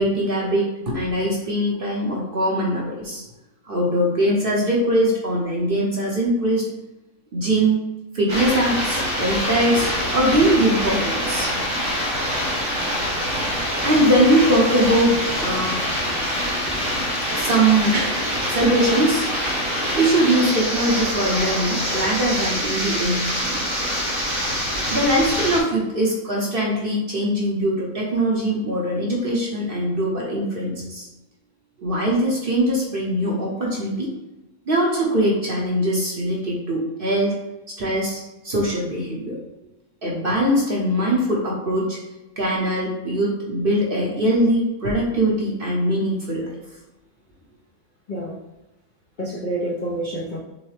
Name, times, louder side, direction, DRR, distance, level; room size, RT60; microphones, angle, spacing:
voice 1, 0.0-3.2 3.7-6.6 7.3-7.8 8.1-11.5 13.8-15.8 17.3-17.9 18.5-19.3 20.0-23.6 24.9-31.0 31.8-34.1 34.7-37.3 37.8-39.4 40.0-42.0 42.4-46.5, right 1 dB, 45° right, -3 dB, 1.0 m, -21 dB
sound 1, 8.3-25.6, equal, 75° right, 1.5 m, -25 dB
voice 2, 49.2-50.4, right 1 dB, 45° left, -6 dB, 0.6 m, -27 dB
6.3 x 2.1 x 3.3 m, 1.0 s
omnidirectional pair, 1.5 m